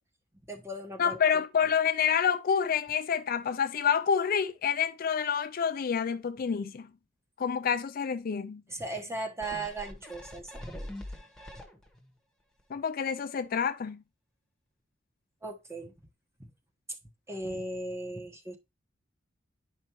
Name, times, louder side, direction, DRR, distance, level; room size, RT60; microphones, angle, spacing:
voice 1, 0.5-1.2 8.7-10.9 15.4-15.9 16.4-16.5 17.3-18.6, right 2 dB, 15° right, 1.3 m, -37 dB
voice 2, 1.0-6.9 7.4-8.6 12.7-14.0, left 7 dB, 45° left, 0.4 m, -28 dB
sound 1, 9.4-12.1 12.6-12.7, left 1 dB, 5° left, 1.4 m, -44 dB
11.0 x 5.3 x 3.1 m
head